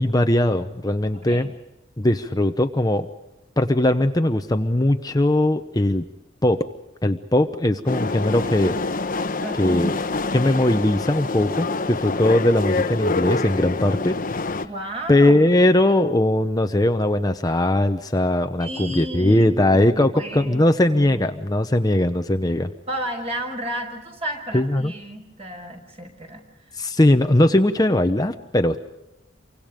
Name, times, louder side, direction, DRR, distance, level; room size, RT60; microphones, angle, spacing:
voice 1, 0.0-1.5 2.0-3.1 3.6-6.0 6.4-6.6 7.0-9.0 9.6-10.0 10.3-14.2 14.6-14.7 15.1-22.7 24.5-24.9 26.8-28.8, left 1 dB, 20° left, 7 dB, 0.9 m, -20 dB
voice 2, 1.1-1.5 9.4-10.0 14.6-15.5 18.6-20.6 20.9-21.2 22.9-26.4, right 1 dB, 35° right, 4 dB, 5.6 m, -33 dB
sound 1, 7.9-14.6, left 3 dB, 45° left, 1.1 m, -26 dB
29.0 x 25.0 x 5.2 m, 0.99 s
head